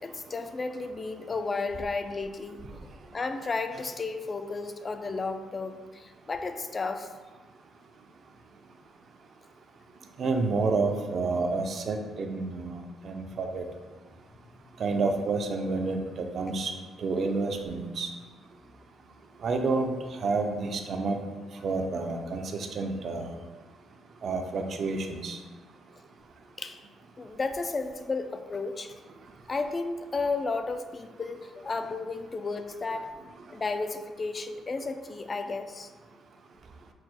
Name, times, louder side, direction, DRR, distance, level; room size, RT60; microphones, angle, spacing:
voice 1, 0.0-7.1 24.2-24.3 26.6-26.8 27.2-28.9 29.5-33.1 33.5-35.9, left 3 dB, 35° left, 8 dB, 0.3 m, -33 dB
voice 2, 10.2-12.8 13.0-13.6 14.8-16.7 17.0-18.1 19.4-19.9 20.2-21.2 21.6-23.3 24.2-25.4, right 3 dB, 55° right, 5 dB, 0.4 m, -29 dB
4.5 x 2.0 x 4.0 m, 1.4 s
cardioid pair, 90°, 0 cm